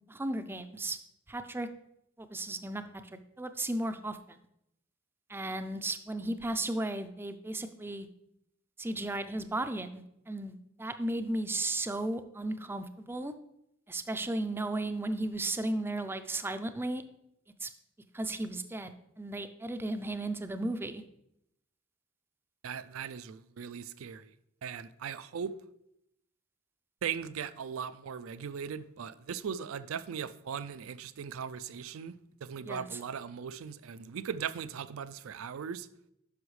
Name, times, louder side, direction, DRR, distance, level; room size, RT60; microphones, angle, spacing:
voice 1, 0.1-1.0 1.3-1.7 2.2-4.4 5.3-8.1 8.8-13.3 13.9-17.0 17.6-17.7 18.1-21.0 32.6-33.0, right 2 dB, 10° right, 0.4 m, -35 dB
voice 2, 22.6-24.3 24.6-25.5 27.0-35.9, right 7 dB, 80° right, 0.4 m, -39 dB
9.7 x 6.2 x 3.2 m
head